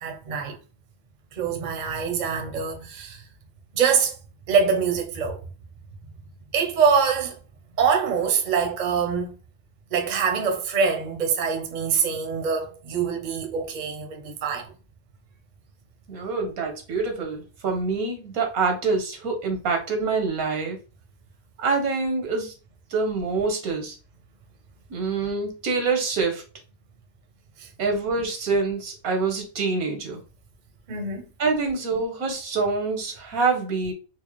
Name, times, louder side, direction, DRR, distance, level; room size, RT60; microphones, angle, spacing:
voice 1, 0.0-0.6 1.3-3.2 3.7-4.2 4.5-5.4 6.5-7.4 7.8-9.4 9.9-14.7 27.6-27.7 30.9-31.3, right 6 dB, 45° right, 0.6 m, -24 dB
voice 2, 16.1-20.8 21.6-22.5 22.9-23.9 24.9-26.4 27.8-30.2 31.4-33.9, right 4 dB, 90° right, 1.4 m, -26 dB
4.5 x 2.1 x 3.0 m
omnidirectional pair, 1.5 m